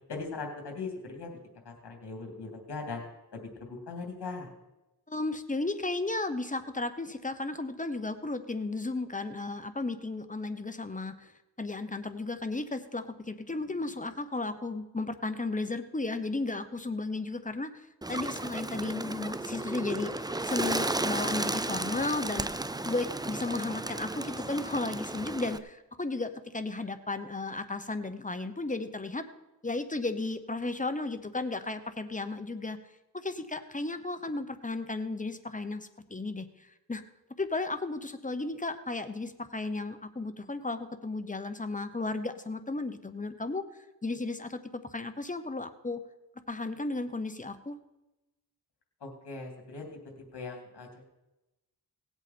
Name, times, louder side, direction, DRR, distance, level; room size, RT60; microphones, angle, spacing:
voice 1, 0.1-1.4 1.6-3.0 3.3-3.4 3.7-4.5 49.0-49.8 50.3-50.9, left 4 dB, 75° left, 2 dB, 2.9 m, -39 dB
voice 2, 5.1-11.3 11.6-29.3 29.6-32.8 33.1-36.5 36.9-37.0 37.4-43.7 44.0-46.0 46.5-47.8, left 2 dB, 20° left, 10 dB, 1.0 m, -34 dB
Bird, 18.0-25.6, right 2 dB, 10° right, 0.5 m, -34 dB
18.0 x 8.1 x 4.4 m, 0.98 s
cardioid pair, 70°, 40 cm